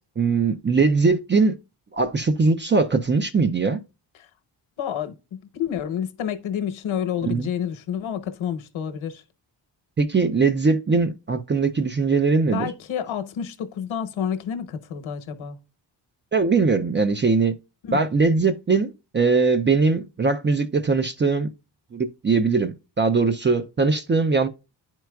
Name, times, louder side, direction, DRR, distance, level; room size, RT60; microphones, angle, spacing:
voice 1, 0.2-1.5 1.9-3.8 7.2-7.5 10.0-12.7 16.3-17.5 17.9-21.5 21.9-24.5, right 4 dB, 25° right, 0.4 m, -21 dB
voice 2, 4.8-9.2 12.5-15.6 17.8-18.0, left 8 dB, 80° left, 1.0 m, -29 dB
10.5 x 4.5 x 2.2 m
wide cardioid pair, 155°, 47 cm